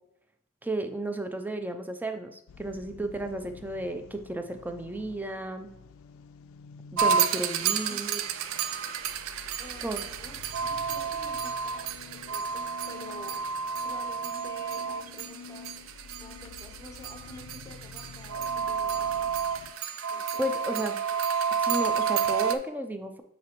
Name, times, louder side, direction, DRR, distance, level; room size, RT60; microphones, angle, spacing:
voice 1, 0.6-5.7 6.9-8.2 9.8-10.0 20.4-21.0 21.6-23.2, right 1 dB, 10° right, 7 dB, 0.4 m, -33 dB
sound 1, 2.5-19.7, left 6 dB, 80° left, 0.3 m, -49 dB
sound 2, 7.0-22.6, right 6 dB, 75° right, 0.4 m, -30 dB
voice 2, 9.6-13.4 13.8-15.8 16.2-19.4 20.1-20.9, left 1 dB, 15° left, 4 dB, 0.8 m, -49 dB
7.4 x 4.2 x 3.0 m, 0.80 s
head